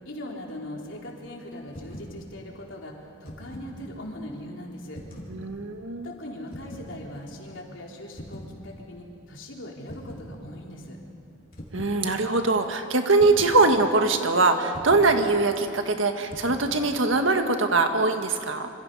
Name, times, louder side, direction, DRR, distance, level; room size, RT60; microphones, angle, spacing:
voice 1, 0.1-5.0 6.0-11.0, left 1 dB, 70° left, -1 dB, 3.7 m, -40 dB
sound 1, 1.7-2.2 3.0-3.8 4.9-5.4 6.5-6.9 8.2-8.5 9.9-10.3 11.5-12.0 13.2-13.6 14.7-15.1 16.3-16.7, equal, 45° left, 4.3 m, -41 dB
voice 2, 5.3-6.1 11.7-18.7, right 3 dB, 75° right, 5 dB, 1.7 m, -22 dB
27.0 x 26.5 x 5.5 m, 2.5 s
head